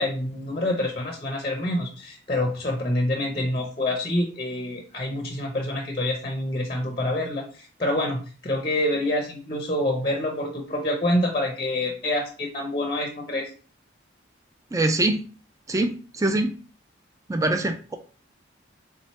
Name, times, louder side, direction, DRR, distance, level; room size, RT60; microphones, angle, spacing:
voice 1, 0.0-13.5, left 1 dB, 25° left, 2 dB, 0.6 m, -27 dB
voice 2, 14.7-15.2 15.7-16.5 17.3-18.0, right 2 dB, 15° right, 7 dB, 0.3 m, -24 dB
3.6 x 3.1 x 4.2 m, 0.39 s
head